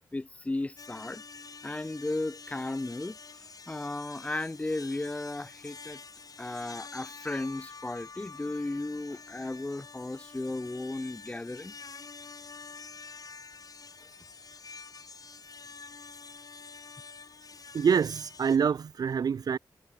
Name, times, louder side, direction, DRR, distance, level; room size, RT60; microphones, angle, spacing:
voice 1, 0.1-1.2 1.6-3.2 3.7-6.0 6.4-11.7, left 2 dB, 15° left, 0.4 m, -35 dB
sound 1, 0.8-18.6, left 5 dB, 55° left, 2.1 m, -47 dB
voice 2, 17.7-19.6, right 7 dB, 55° right, 0.4 m, -26 dB
cardioid pair, 80°, 8 cm